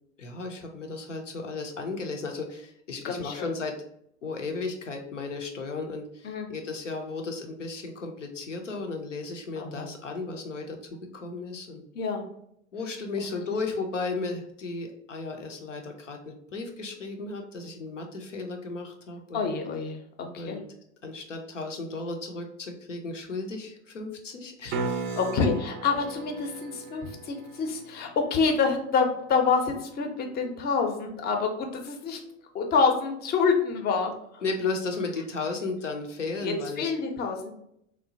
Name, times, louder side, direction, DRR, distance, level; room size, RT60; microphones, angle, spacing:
voice 1, 0.2-3.8 4.2-10.8 11.1-11.8 12.7-19.4 20.4-20.6 21.0-25.2 34.4-36.9, left 3 dB, 85° left, 3 dB, 0.6 m, -34 dB
voice 2, 3.0-3.5 6.2-6.5 9.6-9.9 11.9-12.2 19.3-20.6 25.2-32.2 32.5-34.4 36.4-37.5, left 5 dB, 25° left, 4 dB, 0.5 m, -27 dB
sound 1, 24.7-30.7 35.4-35.5, right 4 dB, 30° right, 0.4 m, -38 dB
2.9 x 2.1 x 2.6 m, 0.74 s
figure-of-eight pair, 80°, 36 cm